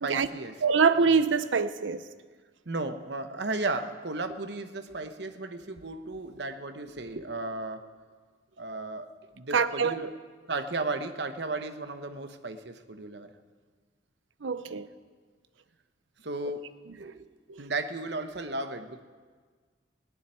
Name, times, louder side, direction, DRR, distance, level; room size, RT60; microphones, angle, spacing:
voice 1, 0.0-0.6 2.7-7.8 8.6-10.1 10.5-13.3 16.2-17.3 17.6-19.0, right 2 dB, 65° right, 1.0 m, -35 dB
voice 2, 0.6-2.0 9.5-9.9 14.4-14.9 17.5-17.6, right 5 dB, 85° right, 0.7 m, -24 dB
18.0 x 7.2 x 9.9 m
head